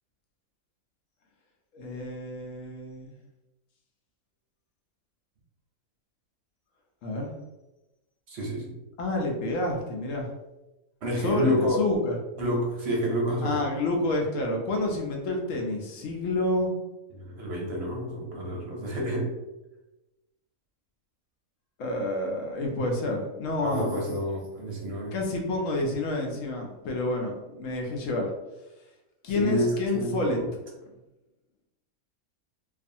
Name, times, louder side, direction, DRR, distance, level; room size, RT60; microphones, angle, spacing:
voice 1, 1.7-3.1 7.0-7.3 9.0-10.3 11.2-12.2 13.4-16.7 21.8-24.0 25.1-28.3 29.2-30.4, left 2 dB, 70° left, 1 dB, 0.9 m, -29 dB
voice 2, 8.3-8.7 11.0-11.8 12.4-13.6 17.1-19.3 23.6-25.1 29.3-30.5, equal, 60° right, -1 dB, 0.7 m, -29 dB
2.4 x 2.4 x 2.6 m, 1.0 s
omnidirectional pair, 1.5 m